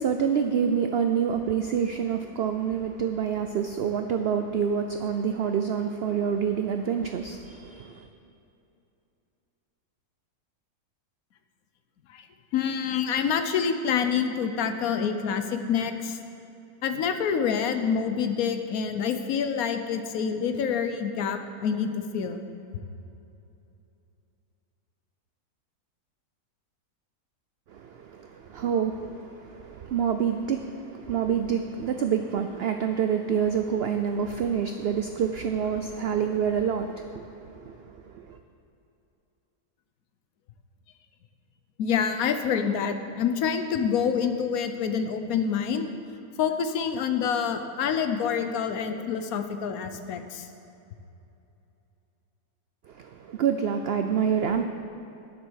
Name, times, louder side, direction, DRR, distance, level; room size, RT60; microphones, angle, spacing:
voice 1, 0.0-8.1 27.7-38.4 52.9-54.6, right 7 dB, 85° right, 7 dB, 0.5 m, -27 dB
voice 2, 12.5-16.2 16.8-22.4 41.8-45.9 46.4-50.5, left 7 dB, 70° left, 7 dB, 1.2 m, -27 dB
10.0 x 7.5 x 6.3 m, 2.8 s
omnidirectional pair, 1.6 m